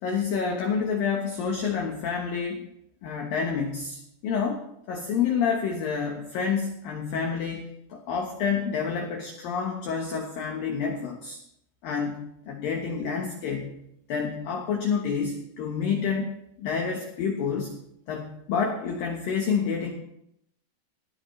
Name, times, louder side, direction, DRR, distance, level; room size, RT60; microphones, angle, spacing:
voice 1, 0.0-2.7 3.0-11.4 11.8-13.8 14.1-17.8 18.1-19.9, left 6 dB, 75° left, 2 dB, 2.1 m, -28 dB
18.5 x 13.5 x 3.2 m, 0.77 s
omnidirectional pair, 6.0 m